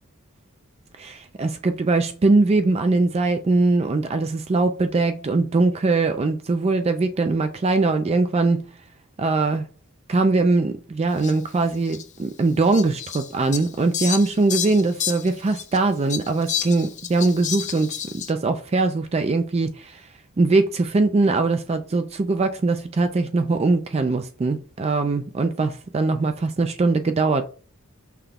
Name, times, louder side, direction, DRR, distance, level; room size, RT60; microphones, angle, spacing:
voice 1, 1.0-8.7 9.2-9.6 10.1-20.1 20.4-27.4, right 3 dB, 30° right, 0.3 m, -21 dB
Fowl, 11.2-11.3 11.9-12.0 12.7-15.8 16.1-18.3, left 9 dB, 35° left, 0.5 m, -30 dB
5.8 x 2.2 x 3.4 m
head